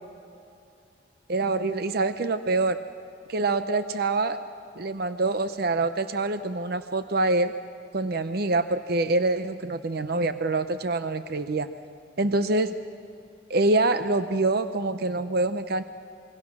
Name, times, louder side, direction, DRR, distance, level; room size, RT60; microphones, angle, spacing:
voice 1, 1.3-2.8 3.3-4.4 4.8-7.5 7.9-11.7 12.2-12.7 13.5-15.8, right 2 dB, 55° right, 10 dB, 0.8 m, -25 dB
26.0 x 23.5 x 6.1 m, 2.5 s
head